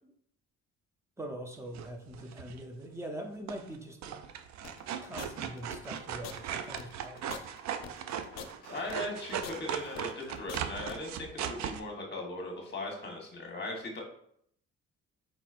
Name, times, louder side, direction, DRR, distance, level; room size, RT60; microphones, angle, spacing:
voice 1, 1.2-4.2 5.0-7.2, right 1 dB, 10° right, 4 dB, 0.6 m, -43 dB
sound 1, 1.7-2.6 3.5-3.8 4.0-11.8, right 8 dB, 65° right, 0.5 m, -38 dB
sound 2, 4.6-11.0, left 8 dB, 60° left, 0.5 m, -45 dB
voice 2, 8.3-14.0, left 1 dB, 35° left, 0 dB, 1.3 m, -39 dB
4.3 x 4.1 x 2.5 m, 0.69 s
cardioid pair, 90°, 30 cm